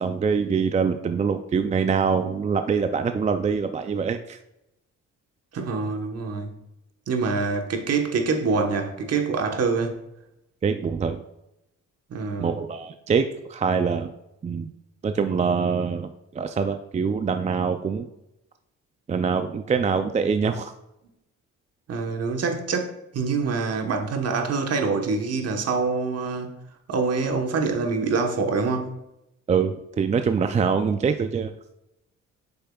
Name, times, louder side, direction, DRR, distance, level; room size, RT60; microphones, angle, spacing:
voice 1, 0.0-4.4 10.6-11.2 12.4-14.1 14.4-14.7 15.0-18.1 19.1-20.7 29.5-31.5, right 6 dB, 25° right, 8 dB, 0.4 m, -24 dB
voice 2, 5.5-6.5 7.1-10.0 12.1-12.5 21.9-26.5 26.9-28.9, right 4 dB, 55° right, 4 dB, 1.2 m, -25 dB
8.0 x 6.5 x 2.3 m, 0.87 s
cardioid pair, 90°, 30 cm